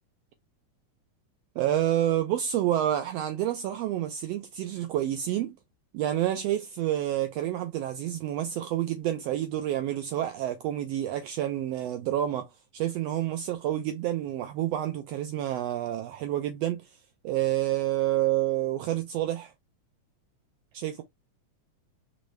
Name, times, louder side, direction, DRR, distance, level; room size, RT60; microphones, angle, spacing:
voice 1, 1.6-5.6 5.9-12.5 12.7-16.9 17.2-19.5 20.7-21.0, right 12 dB, 85° right, 1.4 m, -28 dB
5.1 x 3.1 x 3.1 m
omnidirectional pair, 3.5 m